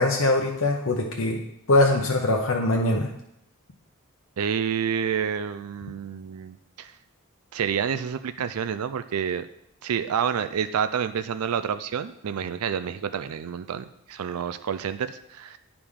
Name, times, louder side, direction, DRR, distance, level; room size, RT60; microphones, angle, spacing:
voice 1, 0.0-1.4 1.7-3.1, left 2 dB, 65° left, 1 dB, 0.8 m, -22 dB
voice 2, 4.4-6.9 7.5-9.5 9.8-15.6, right 7 dB, 90° right, 11 dB, 0.4 m, -29 dB
10.0 x 4.9 x 3.6 m, 0.75 s
head